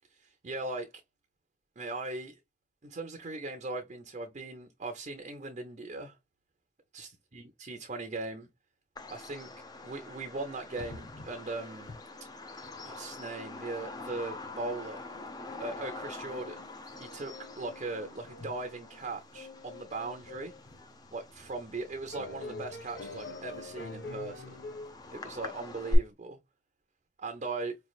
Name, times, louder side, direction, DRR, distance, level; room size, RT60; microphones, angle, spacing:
voice 1, 0.1-1.0 1.8-2.4 2.8-6.1 6.9-8.5 9.1-9.5 9.8-11.9 12.8-15.1 15.6-16.6 17.0-20.5 21.1-24.6 25.1-26.4 27.2-27.8, right 3 dB, 40° right, 0.6 m, -39 dB
Bird vocalization bird call bird song, 9.0-26.0, left 1 dB, 20° left, 0.6 m, -43 dB
sound 1, 10.8-11.5 11.8-11.9 12.3-12.4 12.6-13.0 14.0-14.1 14.4-20.8 21.4-21.5 22.1-25.0, left 3 dB, 65° left, 0.8 m, -46 dB
4.7 x 3.1 x 2.3 m
head